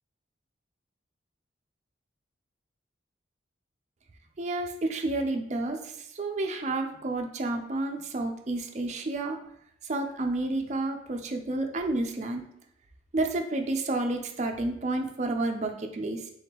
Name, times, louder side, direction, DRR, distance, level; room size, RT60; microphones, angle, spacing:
voice 1, 4.4-9.4 9.8-12.5 13.1-16.3, right 2 dB, 35° right, 4 dB, 0.4 m, -30 dB
3.8 x 3.5 x 2.9 m, 0.74 s
head